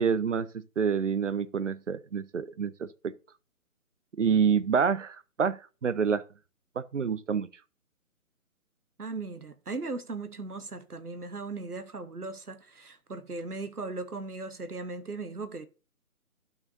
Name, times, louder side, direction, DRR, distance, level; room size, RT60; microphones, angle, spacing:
voice 1, 0.0-3.1 4.2-6.2 6.8-7.5, right 6 dB, 55° right, 0.6 m, -27 dB
voice 2, 9.0-15.7, right 3 dB, 90° right, 1.0 m, -38 dB
12.0 x 5.7 x 2.6 m
figure-of-eight pair, 145°, 44 cm